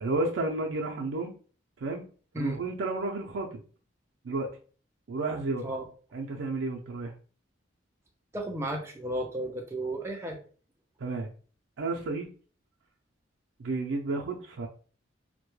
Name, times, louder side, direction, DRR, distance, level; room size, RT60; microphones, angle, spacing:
voice 1, 0.0-1.3 1.8-2.0 2.4-3.6 4.2-4.5 5.1-5.7 6.1-7.1 11.0-11.3 11.8-12.3 13.6-14.7, right 3 dB, 80° right, 1 dB, 0.4 m, -31 dB
voice 2, 8.3-10.4, right 1 dB, 15° right, 2 dB, 0.4 m, -33 dB
2.2 x 2.1 x 3.0 m, 0.40 s
head